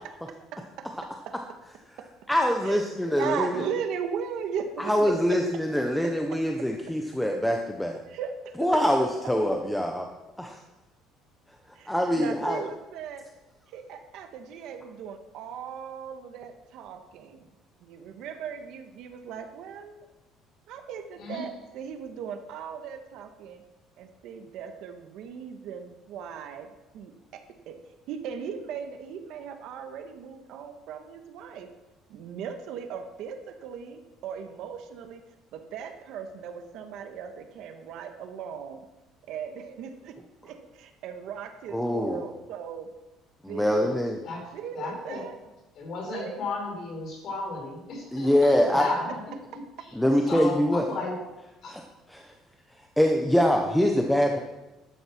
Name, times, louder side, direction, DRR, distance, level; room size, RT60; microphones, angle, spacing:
voice 1, 0.5-0.9 1.3-1.4 2.6-5.4 8.1-8.8 11.7-13.2 13.7-17.5 17.8-20.1 20.7-23.6 24.0-27.8 28.1-31.7 32.1-35.2 35.5-38.8 39.3-40.1 40.4-42.9 43.5-43.9 44.5-45.3 46.1-46.4, right 7 dB, 60° right, 7 dB, 1.3 m, -38 dB
voice 2, 2.3-3.6 4.8-8.0 8.6-10.1 10.4-10.6 11.9-12.6 41.7-42.2 43.4-44.2 48.1-48.9 49.9-50.8 51.7-51.8 52.1-52.3 53.0-54.4, equal, 5° left, 2 dB, 0.8 m, -24 dB
voice 3, 44.7-45.2 45.7-49.2 49.8-50.0 50.2-51.2 51.6-51.8, left 3 dB, 40° left, 0 dB, 4.3 m, -34 dB
12.0 x 8.7 x 6.0 m, 1.0 s
cardioid pair, 175°, 0 cm